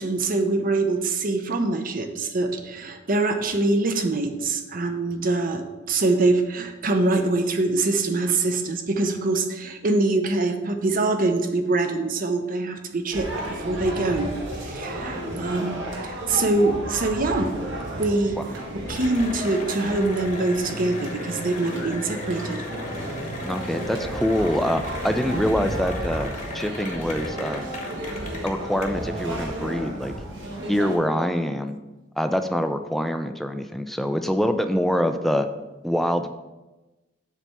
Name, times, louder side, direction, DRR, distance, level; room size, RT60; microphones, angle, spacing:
voice 1, 0.0-14.3 14.6-17.5 18.0-22.6, right 2 dB, 45° right, 6 dB, 0.7 m, -24 dB
sound 1, 13.1-31.0, right 1 dB, 70° right, 1.6 m, -33 dB
Cheering / Applause, 18.9-28.8, left 2 dB, 40° left, 1.1 m, -38 dB
voice 2, 23.4-27.7 28.4-30.1 30.7-31.8 32.2-35.5 35.8-36.3, equal, ahead, 8 dB, 0.3 m, -25 dB
7.3 x 3.4 x 5.4 m, 1.1 s
head